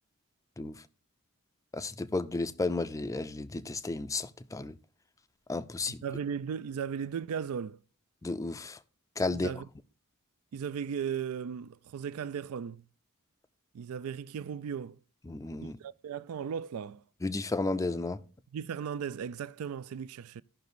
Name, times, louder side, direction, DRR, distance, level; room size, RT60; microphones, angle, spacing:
voice 1, 1.7-4.7 5.5-6.0 8.2-8.8 9.2-9.5 15.3-15.8 17.2-18.2, left 3 dB, 15° left, 0.4 m, -33 dB
voice 2, 5.9-7.8 9.3-9.7 10.5-12.8 13.7-15.0 15.8-17.0 18.5-20.4, right 7 dB, 70° right, 0.3 m, -36 dB
16.0 x 5.9 x 2.6 m
head